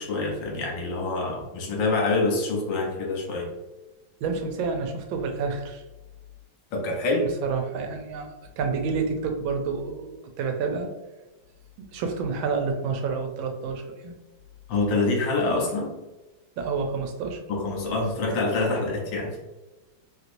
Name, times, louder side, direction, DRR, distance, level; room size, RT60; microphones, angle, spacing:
voice 1, 0.0-3.5 6.7-7.3 14.7-15.9 17.5-19.4, left 3 dB, 75° left, 0 dB, 1.4 m, -26 dB
voice 2, 4.2-5.8 7.4-10.9 11.8-14.1 16.6-17.4, right 5 dB, 85° right, 4 dB, 1.4 m, -29 dB
3.3 x 2.9 x 2.5 m, 1.1 s
omnidirectional pair, 2.1 m